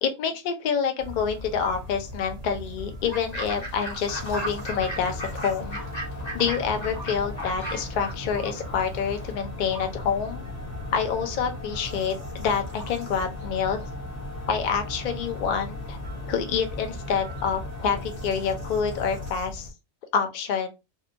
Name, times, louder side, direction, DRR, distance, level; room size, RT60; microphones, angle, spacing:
voice 1, 0.0-5.8 6.3-10.5 10.9-13.8 14.5-16.0 16.3-19.7 20.1-20.7, left 6 dB, 75° left, 6 dB, 0.4 m, -27 dB
sound 1, 1.0-19.7, left 1 dB, 40° right, 0.6 m, -40 dB
Fowl / Bird, 3.1-9.3, right 1 dB, 35° left, 0.9 m, -37 dB
sound 2, 4.0-19.3, left 1 dB, 20° left, 0.5 m, -38 dB
2.7 x 2.2 x 2.5 m, 0.26 s
omnidirectional pair, 1.4 m